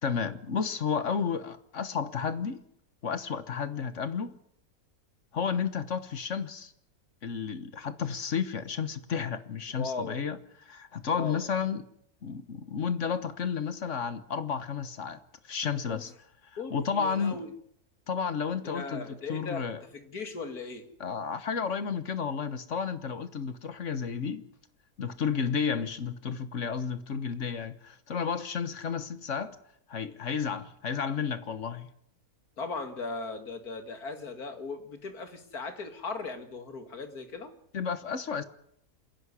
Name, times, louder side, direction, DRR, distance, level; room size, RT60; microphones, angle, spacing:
voice 1, 0.0-2.6 3.0-4.3 5.3-6.7 7.2-11.8 12.2-15.2 15.4-16.1 16.7-17.5 18.1-19.8 21.0-24.4 25.0-29.6 29.9-31.9 37.7-38.4, left 6 dB, 55° left, 1.5 m, -32 dB
voice 2, 9.8-10.2 11.1-11.4 15.9-16.1 16.6-17.5 18.6-20.9 32.6-37.5, left 4 dB, 80° left, 2.8 m, -38 dB
27.5 x 11.0 x 9.9 m
omnidirectional pair, 1.6 m